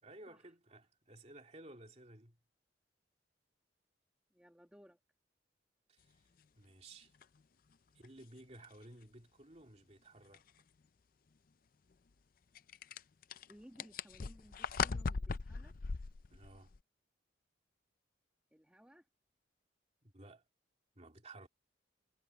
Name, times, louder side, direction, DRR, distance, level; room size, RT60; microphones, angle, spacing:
voice 1, 0.0-2.4 5.9-6.2 6.6-7.1 7.9-10.4 16.3-16.7 20.0-20.4 20.9-21.5, right 2 dB, 35° right, 2.8 m, -56 dB
voice 2, 4.3-5.0 13.4-15.7 18.5-19.1, equal, 5° right, 1.3 m, -60 dB
sound 1, 7.2-7.3 8.0-8.1 8.6-8.7 10.3-10.5 12.6-16.8, left 5 dB, 50° left, 0.5 m, -39 dB
head